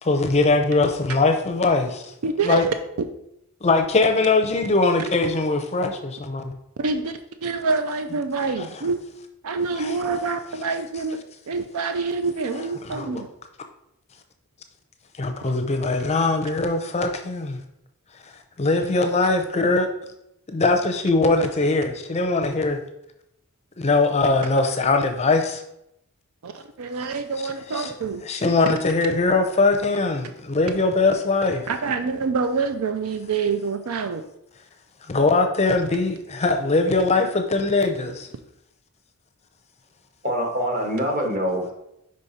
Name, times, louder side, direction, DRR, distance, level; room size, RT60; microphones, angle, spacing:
voice 1, 0.0-2.1 2.4-2.6 3.6-6.6 9.8-9.9 12.9-13.2 15.2-17.6 18.6-19.8 20.5-22.8 23.8-25.6 27.7-27.9 28.3-31.7 35.1-38.3, left 3 dB, 30° left, 5 dB, 0.6 m, -21 dB
voice 2, 2.2-2.7 6.8-7.1 7.4-9.0 9.4-13.3 26.4-28.2 31.7-34.2, right 4 dB, 65° right, 8 dB, 0.4 m, -26 dB
voice 3, 40.2-41.7, equal, 40° right, 0 dB, 1.6 m, -24 dB
5.3 x 5.2 x 4.2 m, 0.80 s
head